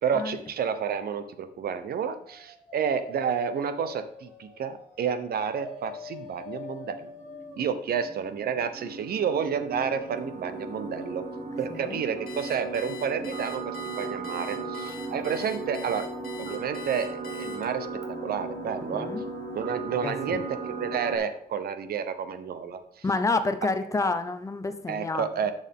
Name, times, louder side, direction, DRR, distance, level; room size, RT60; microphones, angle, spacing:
voice 1, 0.0-7.1 7.5-11.2 11.6-16.1 16.4-17.9 18.2-19.1 19.5-23.0 24.9-25.5, right 7 dB, 65° right, 11 dB, 0.8 m, -30 dB
Dog, 2.1-7.7, left 3 dB, 5° right, 2.7 m, -44 dB
sound 1, 6.2-21.2, right 3 dB, 45° right, 1.4 m, -37 dB
voice 2, 11.7-12.0 18.8-19.3 20.0-20.4 23.0-25.3, left 3 dB, 20° left, 10 dB, 0.6 m, -29 dB
Alarm, 12.3-17.9, left 8 dB, 55° left, 2.3 m, -44 dB
11.0 x 6.5 x 3.7 m, 0.75 s
wide cardioid pair, 175°, 17 cm